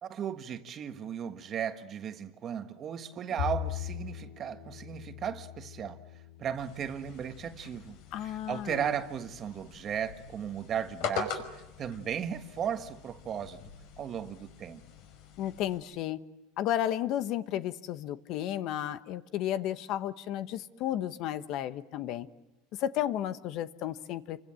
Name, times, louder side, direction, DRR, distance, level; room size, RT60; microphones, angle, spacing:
voice 1, 0.0-6.0 6.4-13.6 14.0-14.8, right 8 dB, 30° right, 8 dB, 1.5 m, -36 dB
Bowed string instrument, 3.4-9.7, left 13 dB, 80° left, 4.9 m, -42 dB
sound 1, 6.6-15.8, left 7 dB, 65° left, 5.5 m, -43 dB
voice 2, 8.1-8.9 15.4-16.2 16.6-22.3 22.8-24.4, left 11 dB, 45° left, 12 dB, 1.1 m, -33 dB
29.0 x 25.0 x 7.7 m, 0.99 s
supercardioid pair, 150°, 0 cm